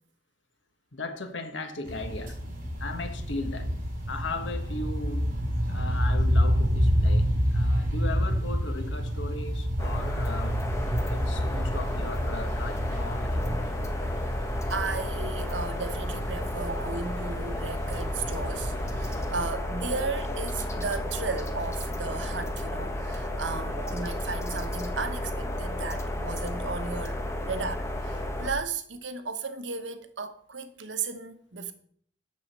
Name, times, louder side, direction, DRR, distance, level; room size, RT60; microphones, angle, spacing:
voice 1, 0.9-2.4 2.8-3.8 4.1-5.4 5.7-10.6 11.1-13.5, left 3 dB, 80° left, 1.4 m, -37 dB
sound 1, 1.9-19.4, equal, 50° right, 4.5 m, -29 dB
sound 2, 9.8-28.5, left 1 dB, 15° left, 1.1 m, -32 dB
voice 2, 14.7-31.7, right 4 dB, 80° right, 1.1 m, -35 dB
7.6 x 6.4 x 7.4 m
head